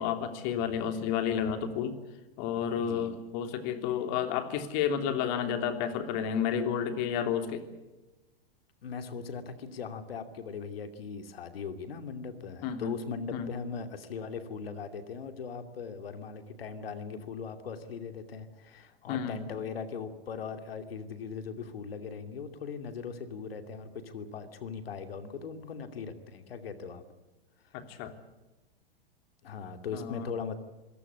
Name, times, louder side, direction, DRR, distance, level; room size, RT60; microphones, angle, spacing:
voice 1, 0.0-2.0 2.4-7.6 12.6-12.9 13.3-13.5 19.1-19.4 27.7-28.1 29.9-30.3, left 8 dB, 50° left, 8 dB, 3.2 m, -31 dB
voice 2, 2.8-3.1 8.8-27.0 29.4-30.6, left 5 dB, 75° left, 8 dB, 2.7 m, -39 dB
26.0 x 17.5 x 8.5 m, 1.1 s
hypercardioid pair, 110°, 29 cm